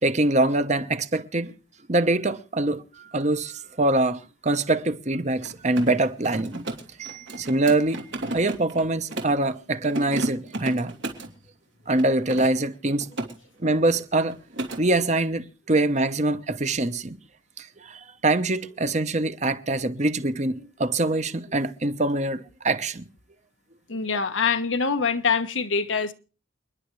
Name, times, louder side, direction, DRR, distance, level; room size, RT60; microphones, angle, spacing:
voice 1, 0.0-1.5 1.9-2.8 3.1-6.6 7.0-8.0 8.3-10.9 11.9-13.1 13.6-14.4 14.8-17.2 17.9-23.0, right 2 dB, 35° right, 1.0 m, -24 dB
Mechanisms, 5.3-9.4 9.8-11.3 11.9-13.3 13.6-14.0 14.2-14.8, right 1 dB, 85° right, 3.4 m, -33 dB
voice 2, 23.9-26.1, left 5 dB, 85° left, 1.3 m, -24 dB
29.0 x 10.5 x 3.2 m
head